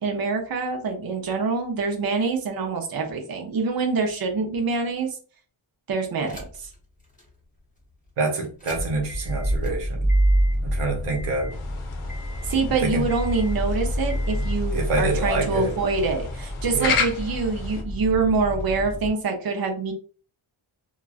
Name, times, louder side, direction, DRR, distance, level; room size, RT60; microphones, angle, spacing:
voice 1, 0.0-5.2 5.9-6.7 12.4-19.9, right 4 dB, 45° right, 0.7 m, -25 dB
sound 1, 6.2-6.8 7.2-7.3 8.4-19.1, equal, 15° left, 1.2 m, -27 dB
voice 2, 8.2-10.1 10.6-11.5 12.8-13.0 14.7-15.7 16.7-17.0, right 3 dB, 85° right, 0.9 m, -26 dB
sound 2, 11.5-17.8, left 6 dB, 75° left, 0.7 m, -33 dB
2.9 x 2.4 x 2.4 m
wide cardioid pair, 85°, 50 cm